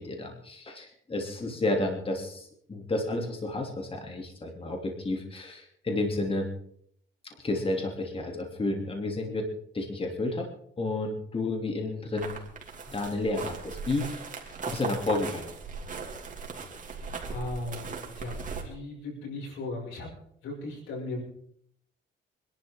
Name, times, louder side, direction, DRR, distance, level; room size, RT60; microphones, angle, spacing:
voice 1, 0.0-6.5 7.4-9.5 9.7-10.5 10.8-12.4 12.9-14.2 14.7-15.5, left 2 dB, 30° left, 2 dB, 2.9 m, -31 dB
sound 1, 12.2-18.6, right 4 dB, 40° right, 3.0 m, -38 dB
voice 2, 17.3-20.1 20.4-21.2, left 2 dB, 90° left, -1 dB, 6.1 m, -37 dB
25.0 x 11.5 x 3.7 m, 0.67 s
cardioid pair, 90°, 20 cm